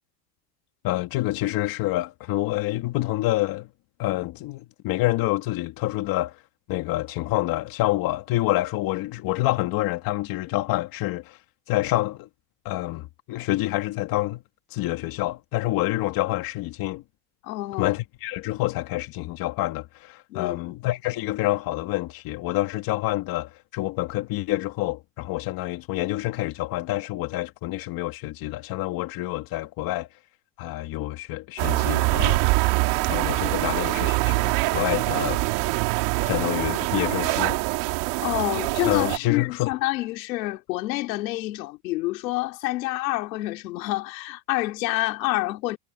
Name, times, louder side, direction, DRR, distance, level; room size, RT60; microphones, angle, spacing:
voice 1, 0.8-3.7 4.0-6.4 6.7-11.4 11.7-12.3 12.6-14.4 14.7-17.0 17.8-30.1 30.6-32.5 33.1-35.4 36.2-37.6 38.9-39.7, left 17 dB, 45° left, 2.2 m, -27 dB
voice 2, 17.4-17.9 20.3-20.6 38.2-45.8, left 18 dB, 85° left, 4.0 m, -28 dB
sound 1, 31.6-39.2, right 25 dB, 55° right, 2.9 m, -24 dB
supercardioid pair, 150°, 49 cm